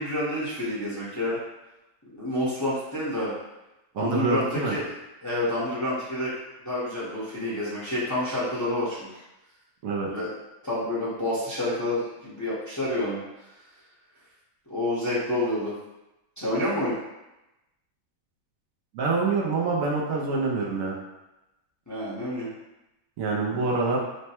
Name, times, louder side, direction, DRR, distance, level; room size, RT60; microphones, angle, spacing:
voice 1, 0.0-1.4 2.1-3.3 4.0-4.8 5.2-6.3 6.6-9.2 10.0-10.3 10.6-13.2 14.7-15.7 16.4-16.9 21.9-22.5, left 1 dB, 15° left, -10 dB, 0.8 m, -28 dB
voice 2, 3.9-4.7 9.8-10.1 18.9-20.9 23.2-24.0, right 4 dB, 70° right, -2 dB, 1.0 m, -26 dB
3.2 x 2.1 x 4.3 m, 0.97 s
omnidirectional pair, 1.5 m